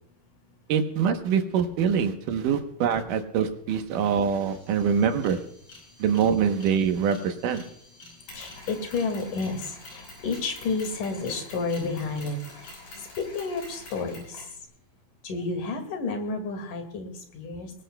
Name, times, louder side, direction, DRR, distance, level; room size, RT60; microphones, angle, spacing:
voice 1, 0.7-5.4 6.0-7.6, right 7 dB, 70° right, 6 dB, 2.4 m, -24 dB
sound 1, 3.5-3.6 3.8-14.6, left 2 dB, 35° left, 7.7 m, -53 dB
Mechanisms, 8.3-14.6, left 2 dB, 85° left, 7.8 m, -46 dB
voice 2, 8.3-14.5 15.2-17.7, left 3 dB, 60° left, 5 dB, 3.5 m, -31 dB
22.5 x 19.0 x 2.3 m, 0.68 s
omnidirectional pair, 4.4 m